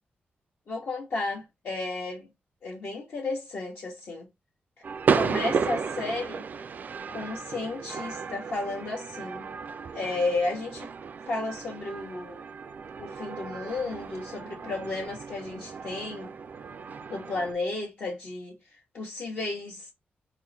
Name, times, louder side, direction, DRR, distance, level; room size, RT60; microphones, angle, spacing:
voice 1, 0.7-2.3 2.6-4.3 5.1-6.4 7.1-9.5 9.9-10.9 11.3-12.4 13.0-16.3 17.1-18.6 18.9-19.9, left 3 dB, 60° left, 1.2 m, -33 dB
sound 1, 4.8-17.5, right 6 dB, 50° right, 0.3 m, -33 dB
3.6 x 2.1 x 4.1 m
wide cardioid pair, 130°, 4 cm